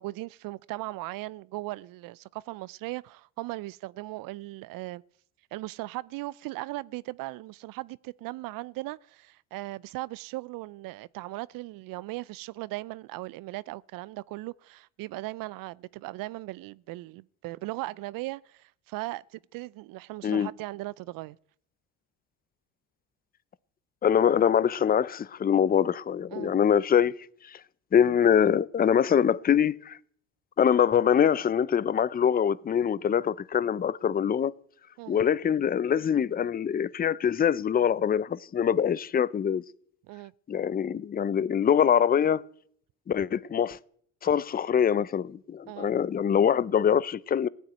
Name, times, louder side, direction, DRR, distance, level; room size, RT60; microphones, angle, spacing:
voice 1, 0.0-5.0 5.5-21.4 26.3-26.5 35.0-35.2 40.1-40.3 45.7-45.9, right 19 dB, 60° right, 0.5 m, -38 dB
voice 2, 24.0-27.1 27.5-27.6 27.9-30.0 30.6-34.5 35.1-39.6 40.5-42.4 43.1-43.8 44.2-47.5, left 8 dB, 25° left, 0.6 m, -24 dB
16.0 x 9.0 x 9.0 m
supercardioid pair, 75°, 38 cm